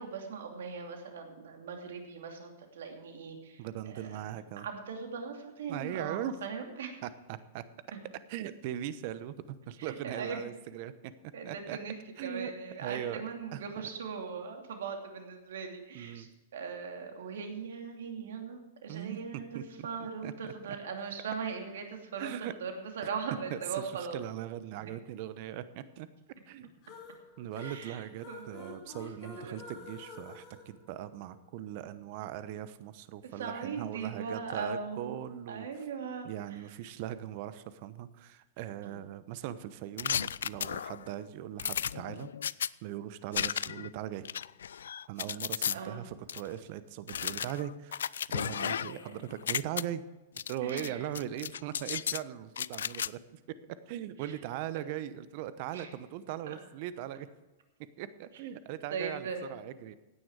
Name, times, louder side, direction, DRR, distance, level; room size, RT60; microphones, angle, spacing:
voice 1, 0.0-7.0 7.9-8.0 9.8-10.4 11.3-12.0 12.2-22.3 22.6-24.2 24.8-24.9 27.6-28.8 29.4-29.6 33.4-35.2 35.5-36.3 38.8-39.0 45.3-45.4 45.7-46.0 48.6-49.1 50.6-51.0 55.7-55.9 56.5-56.6 58.9-59.6, right 5 dB, 70° right, 4 dB, 2.7 m, -40 dB
voice 2, 3.6-4.7 5.7-6.3 7.0-7.6 8.3-11.1 11.4-11.8 12.2-13.2 13.5-13.9 15.9-16.3 18.9-19.9 20.2-20.5 22.2-22.5 23.5-26.1 26.4-26.7 27.4-35.8 36.2-42.3 42.8-44.3 45.1-50.0 50.5-53.4 53.9-57.3 58.0-60.0, right 11 dB, 50° right, 14 dB, 1.0 m, -40 dB
sound 1, 26.8-31.6, left 4 dB, 45° left, 3.4 m, -49 dB
sound 2, 40.0-41.1 41.6-42.7 43.3-43.9 44.3-45.8 46.3-46.4 47.1-49.1 49.3-49.8 50.4-50.9 51.2-52.2 52.6-53.1, left 8 dB, 75° left, 0.3 m, -34 dB
16.0 x 9.7 x 4.9 m, 1.1 s
hypercardioid pair, 110°, 0 cm